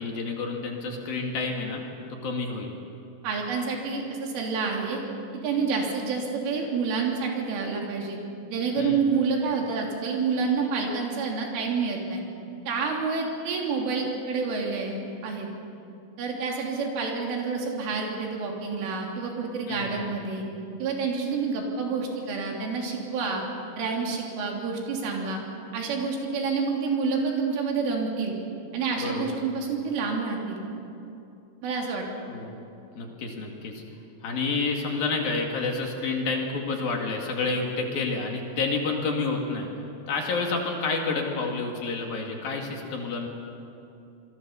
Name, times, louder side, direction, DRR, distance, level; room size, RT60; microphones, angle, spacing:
voice 1, 0.0-1.8 2.1-2.7 8.8-9.0 19.7-20.1 29.0-29.4 32.3-32.6 33.0-33.8 34.2-39.7 40.1-43.3, left 3 dB, 55° left, 1 dB, 3.6 m, -29 dB
voice 2, 3.2-5.0 5.4-8.2 8.5-12.2 12.7-15.5 16.2-20.4 20.8-23.4 23.8-25.4 25.7-28.4 28.7-30.6 31.6-32.1, right 4 dB, 85° right, 0 dB, 5.7 m, -28 dB
27.5 x 22.5 x 6.9 m, 2.7 s
omnidirectional pair, 5.6 m